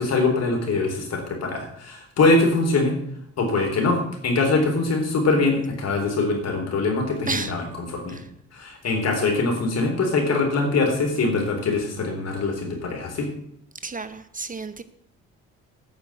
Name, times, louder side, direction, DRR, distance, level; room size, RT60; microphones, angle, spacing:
voice 1, 0.0-3.0 3.4-8.2 8.5-13.3, left 3 dB, 55° left, 2 dB, 4.1 m, -23 dB
voice 2, 13.8-14.8, right 4 dB, 25° right, 12 dB, 0.8 m, -31 dB
9.6 x 6.4 x 8.5 m, 0.70 s
cardioid pair, 90°, 30 cm